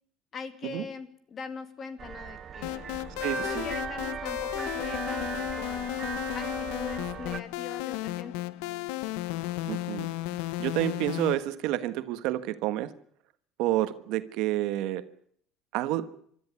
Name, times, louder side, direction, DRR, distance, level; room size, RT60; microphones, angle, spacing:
voice 1, 0.3-2.9 3.4-5.9 6.3-8.4, left 5 dB, 35° left, 2.3 m, -41 dB
sound 1, 2.0-7.4, right 7 dB, 30° right, 0.8 m, -37 dB
sound 2, 2.6-11.3, left 16 dB, 85° left, 0.9 m, -34 dB
voice 2, 3.2-3.7 9.7-10.1 10.6-12.9 13.6-15.1 15.7-16.1, right 14 dB, 70° right, 1.3 m, -29 dB
24.5 x 13.5 x 9.6 m
cardioid pair, 130°, 0 cm